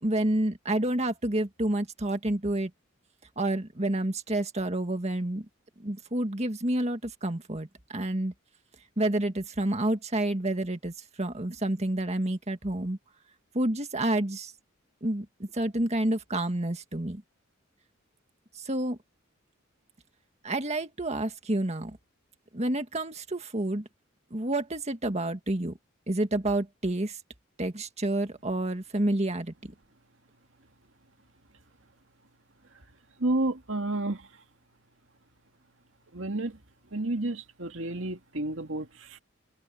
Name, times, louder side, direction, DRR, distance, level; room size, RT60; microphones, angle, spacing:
voice 1, 0.0-2.7 3.4-5.5 5.8-8.3 9.0-13.0 13.5-14.5 15.0-17.2 18.6-19.0 20.4-22.0 22.5-23.8 24.3-25.8 26.1-27.2 27.6-29.7, right 1 dB, 35° right, 1.9 m, -29 dB
voice 2, 33.2-34.3 36.1-36.6 36.9-39.2, right 2 dB, 65° right, 2.4 m, -30 dB
head